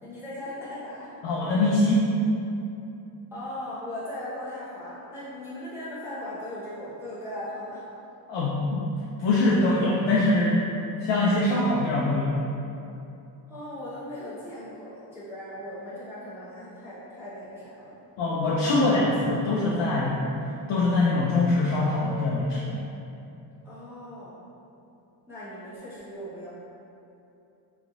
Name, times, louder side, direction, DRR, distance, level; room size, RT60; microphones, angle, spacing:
voice 1, 0.0-1.1 3.3-7.8 13.5-18.0 23.6-24.4 25.3-26.5, left 1 dB, 5° right, -12 dB, 0.6 m, -38 dB
voice 2, 1.2-2.0 8.3-8.8 9.2-10.7 11.0-12.3 18.2-20.2 20.7-22.8, left 2 dB, 75° left, -6 dB, 0.5 m, -23 dB
3.0 x 2.4 x 2.6 m, 2.8 s
cardioid pair, 90°, 46 cm